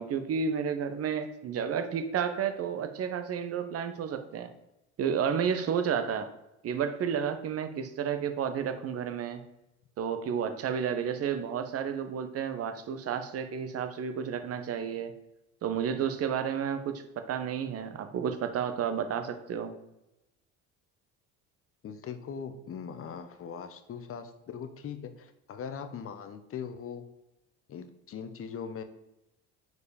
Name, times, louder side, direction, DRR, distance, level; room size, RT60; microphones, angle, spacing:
voice 1, 0.0-4.5 5.0-6.3 6.6-9.4 10.0-15.1 15.6-19.7, right 7 dB, 45° right, 8 dB, 0.8 m, -31 dB
voice 2, 21.8-27.0 27.7-28.8, left 7 dB, 40° left, 9 dB, 0.9 m, -40 dB
4.8 x 4.7 x 4.9 m, 0.93 s
supercardioid pair, 85°, 34 cm